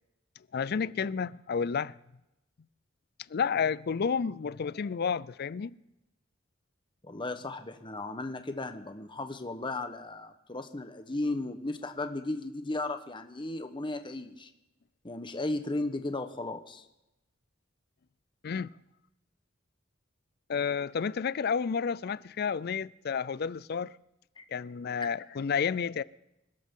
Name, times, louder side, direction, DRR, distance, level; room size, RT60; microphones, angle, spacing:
voice 1, 0.5-1.9 3.3-5.7 18.4-18.7 20.5-23.9 24.5-26.0, left 6 dB, 55° left, 0.4 m, -31 dB
voice 2, 7.0-14.5 15.0-16.8 24.4-24.5, left 2 dB, 25° left, 1.1 m, -35 dB
26.5 x 12.5 x 3.8 m
head